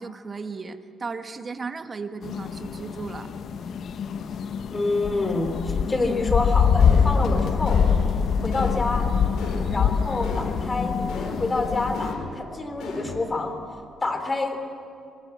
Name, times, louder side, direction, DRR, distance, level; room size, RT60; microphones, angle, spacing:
voice 1, 0.0-3.3, right 4 dB, 35° right, 9 dB, 1.5 m, -35 dB
sound 1, 2.2-12.1, left 6 dB, 60° left, 1.1 m, -24 dB
voice 2, 4.7-7.8 8.4-9.1 9.7-13.6 14.0-14.6, left 3 dB, 25° left, 7 dB, 3.5 m, -27 dB
sound 2, 6.8-7.2 7.7-8.1 8.5-8.9 9.4-9.8 10.2-10.6 11.1-11.5 11.9-12.4 12.8-13.2, left 4 dB, 85° left, 4.6 m, -35 dB
24.0 x 19.5 x 7.9 m, 2.5 s
cardioid pair, 90°, 0 cm